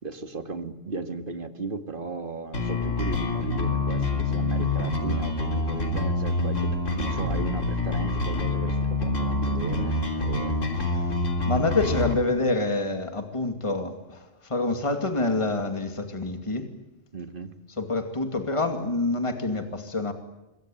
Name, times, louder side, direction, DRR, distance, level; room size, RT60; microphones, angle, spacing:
voice 1, 0.0-10.6 17.1-17.5, right 3 dB, 45° right, 8 dB, 2.3 m, -36 dB
sound 1, 2.5-12.1, left 2 dB, 80° left, 3.7 m, -26 dB
voice 2, 11.5-16.7 17.8-20.1, left 2 dB, 25° left, 6 dB, 2.5 m, -27 dB
26.5 x 23.5 x 9.1 m, 0.98 s
omnidirectional pair, 1.3 m